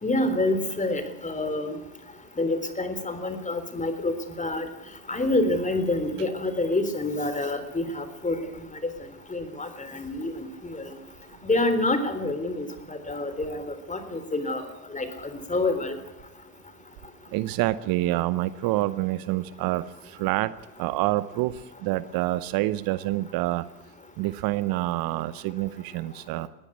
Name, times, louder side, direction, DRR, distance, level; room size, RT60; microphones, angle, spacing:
voice 1, 0.0-1.8 2.4-4.7 5.1-8.4 8.8-8.9 9.3-10.3 10.6-10.9 11.4-14.7 14.9-16.0, left 2 dB, 15° left, 10 dB, 3.8 m, -27 dB
voice 2, 17.3-20.5 20.8-21.5 21.8-23.6 24.2-26.5, right 17 dB, 55° right, 16 dB, 0.9 m, -27 dB
20.0 x 15.5 x 8.5 m, 1.0 s
hypercardioid pair, 70°, 43 cm